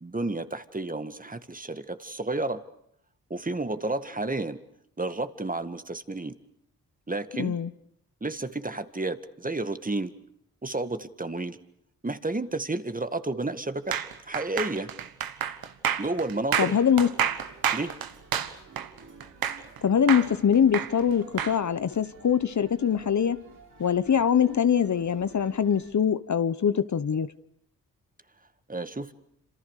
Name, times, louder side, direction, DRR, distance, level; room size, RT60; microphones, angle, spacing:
voice 1, 0.0-2.6 3.3-4.6 5.0-6.4 7.1-7.6 8.2-10.1 10.6-11.6 12.0-13.9 14.3-14.9 16.0-16.8 17.7-18.0 28.7-29.1, right 2 dB, 25° right, 1.9 m, -31 dB
voice 2, 7.4-7.7 16.6-17.1 19.8-23.4 23.8-27.3, left 8 dB, 55° left, 1.1 m, -23 dB
sound 1, 13.9-19.8 20.1-21.6, right 9 dB, 85° right, 1.5 m, -29 dB
sound 2, 16.8-25.9, right 4 dB, 65° right, 7.5 m, -52 dB
28.0 x 26.5 x 6.6 m
supercardioid pair, 45°, 35 cm